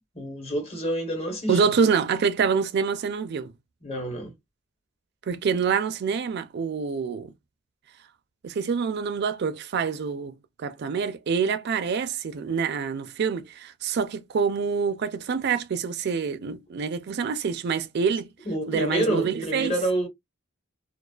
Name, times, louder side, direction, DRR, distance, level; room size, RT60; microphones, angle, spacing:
voice 1, 0.1-1.6 3.8-4.3 18.4-20.1, right 1 dB, 30° left, 1.1 m, -28 dB
voice 2, 1.5-3.5 5.3-7.3 8.4-18.3 18.7-19.7, right 6 dB, 55° right, 0.4 m, -26 dB
2.3 x 2.3 x 2.3 m
head